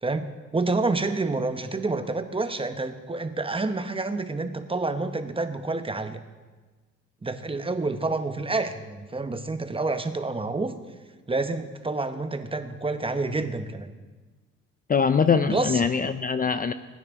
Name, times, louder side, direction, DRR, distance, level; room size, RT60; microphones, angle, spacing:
voice 1, 0.0-6.2 7.2-10.7 11.3-13.9 15.5-15.8, right 3 dB, 20° right, 8 dB, 1.0 m, -28 dB
voice 2, 14.9-16.7, left 6 dB, 30° left, 11 dB, 0.5 m, -22 dB
20.5 x 9.6 x 3.6 m, 1.3 s
cardioid pair, 90°, 30 cm